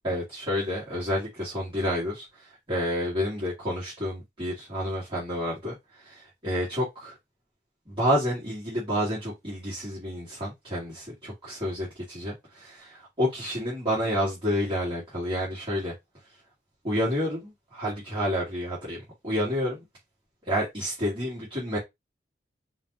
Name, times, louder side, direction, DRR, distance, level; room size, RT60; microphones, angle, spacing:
voice 1, 0.0-7.2 7.9-15.9 16.8-19.8 20.4-21.8, equal, 30° right, 2.5 m, -29 dB
5.5 x 2.8 x 3.1 m
head